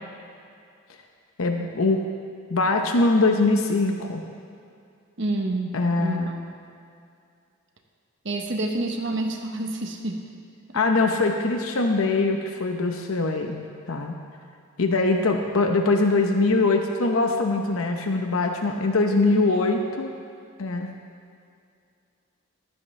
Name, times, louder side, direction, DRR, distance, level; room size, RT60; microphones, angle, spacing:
voice 1, 1.4-2.0 2.5-4.2 5.7-6.3 10.7-14.2 14.8-20.1 20.6-20.9, left 3 dB, 80° left, 3 dB, 0.8 m, -22 dB
voice 2, 5.2-6.3 8.2-10.2 19.3-19.8, right 2 dB, 60° right, 3 dB, 1.0 m, -29 dB
14.5 x 12.5 x 3.3 m, 2.4 s
head